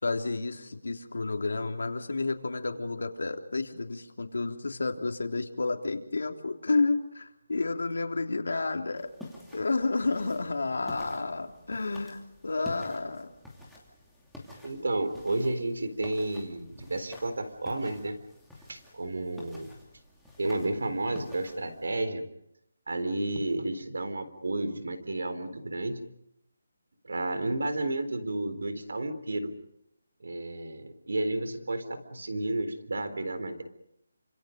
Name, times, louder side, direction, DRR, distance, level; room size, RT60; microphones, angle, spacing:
voice 1, 0.0-9.1 9.5-13.3, left 3 dB, 80° left, 4 dB, 3.4 m, -31 dB
sound 1, 9.0-22.0, left 1 dB, ahead, 2.6 m, -50 dB
voice 2, 14.6-18.2 18.7-19.7 20.4-22.2 22.9-26.0 27.0-29.5 30.2-33.6, right 2 dB, 80° right, 10 dB, 3.9 m, -31 dB
29.0 x 26.5 x 5.3 m, 0.81 s
hypercardioid pair, 175°, 0 cm